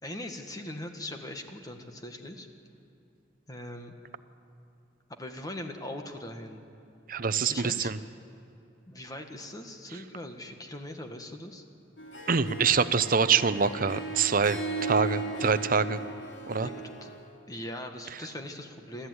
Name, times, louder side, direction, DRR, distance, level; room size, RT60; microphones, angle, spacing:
voice 1, 0.0-2.5 3.5-3.9 5.1-6.6 7.5-7.9 8.9-11.6 16.6-17.1 17.5-19.1, left 1 dB, 20° left, 4 dB, 1.8 m, -40 dB
voice 2, 7.1-8.0 12.3-16.0 16.5-16.7, right 5 dB, 50° right, 13 dB, 0.8 m, -25 dB
Harp, 12.0-17.3, right 3 dB, 85° left, 3.1 m, -37 dB
29.5 x 13.0 x 9.6 m, 2.7 s
head